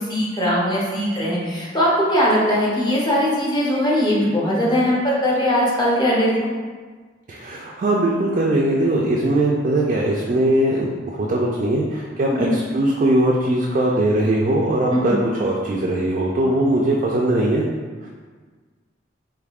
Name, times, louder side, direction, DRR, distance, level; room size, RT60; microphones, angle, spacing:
voice 1, 0.0-6.4 12.2-12.5 14.9-15.2, equal, 25° left, -5 dB, 0.6 m, -20 dB
voice 2, 7.3-17.6 18.0-18.1, right 1 dB, 40° right, -3 dB, 0.3 m, -20 dB
3.4 x 3.4 x 2.3 m, 1.5 s
head